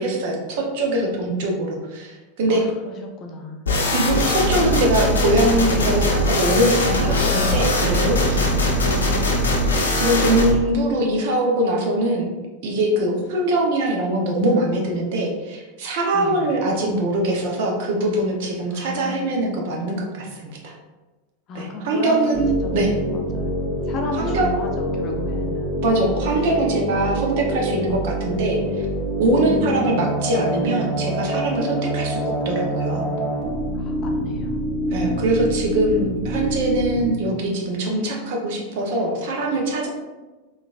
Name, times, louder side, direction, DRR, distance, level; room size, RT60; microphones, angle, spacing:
voice 1, 0.0-2.6 3.9-8.4 10.0-12.3 12.6-20.7 21.5-22.9 24.2-24.6 25.8-28.6 29.2-33.1 34.9-39.9, right 1 dB, 60° right, 0 dB, 0.7 m, -22 dB
voice 2, 2.5-3.9 8.3-8.9 16.1-16.4 18.7-19.7 21.5-22.8 23.1-25.8 26.4-26.5 29.3-30.0 33.7-34.9, left 2 dB, 40° left, 2 dB, 0.6 m, -34 dB
sound 1, 3.7-10.5, left 1 dB, 85° left, 0.6 m, -20 dB
sound 2, 22.3-37.1, equal, 15° right, 1.2 m, -26 dB
3.8 x 2.5 x 2.4 m, 1.2 s
hypercardioid pair, 90°, 0 cm